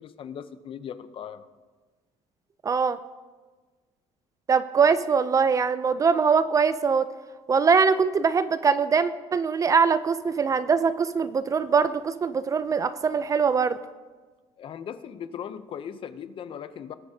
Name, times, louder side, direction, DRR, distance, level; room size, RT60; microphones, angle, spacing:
voice 1, 0.0-1.5 14.6-16.9, left 8 dB, 45° left, 13 dB, 0.6 m, -38 dB
voice 2, 2.6-3.0 4.5-7.1 7.5-13.8, right 5 dB, 25° right, 14 dB, 0.4 m, -22 dB
19.5 x 8.4 x 2.7 m, 1.3 s
cardioid pair, 135°, 13 cm